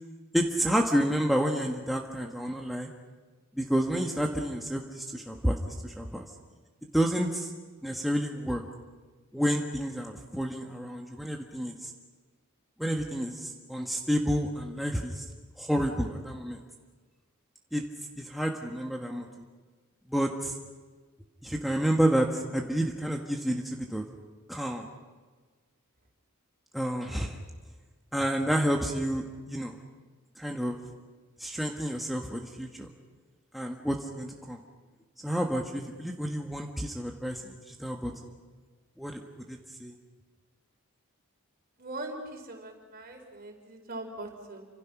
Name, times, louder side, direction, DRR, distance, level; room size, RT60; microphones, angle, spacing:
voice 1, 0.3-2.9 3.6-6.3 6.9-7.5 7.8-8.6 9.3-11.9 12.8-15.3 15.6-16.6 17.7-17.8 18.2-19.3 20.1-20.5 21.4-24.0 24.5-24.9 26.7-27.4 28.1-29.7 30.4-30.8 31.4-32.9 33.5-34.6 35.2-38.1 39.0-39.2 39.5-39.9, equal, ahead, 1 dB, 1.3 m, -29 dB
voice 2, 41.8-44.7, right 2 dB, 45° right, 3 dB, 4.5 m, -41 dB
29.0 x 26.0 x 6.0 m, 1.4 s
head